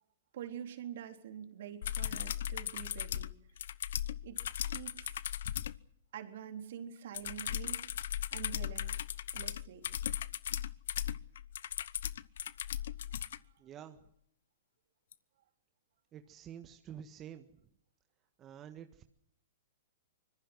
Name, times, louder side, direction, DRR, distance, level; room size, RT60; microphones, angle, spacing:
voice 1, 0.3-3.3 4.2-5.2 6.1-7.9 8.3-8.9 9.3-9.8, right 9 dB, 65° right, 6 dB, 3.8 m, -46 dB
sound 1, 1.8-5.8 7.1-13.4 15.1-15.2, left 10 dB, 70° left, 0.9 m, -37 dB
voice 2, 13.6-14.0 16.1-17.5 18.4-19.0, right 9 dB, 25° right, 7 dB, 1.5 m, -49 dB
25.0 x 21.5 x 6.3 m, 0.70 s
hypercardioid pair, 115°, 0 cm